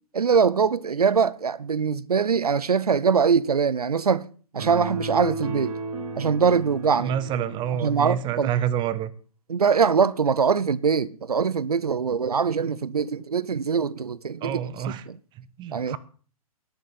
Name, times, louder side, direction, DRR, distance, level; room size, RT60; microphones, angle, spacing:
voice 1, 0.1-4.3 4.5-5.7 6.2-7.1 7.8-8.5 9.5-14.6 15.7-16.0, right 6 dB, 80° right, 0.8 m, -22 dB
sound 1, 4.6-8.1, right 3 dB, 65° right, 4.3 m, -34 dB
voice 2, 7.0-9.1 14.4-15.1 15.3-16.0, right 10 dB, 25° right, 1.2 m, -28 dB
18.5 x 10.5 x 4.3 m
figure-of-eight pair, 120°, 19 cm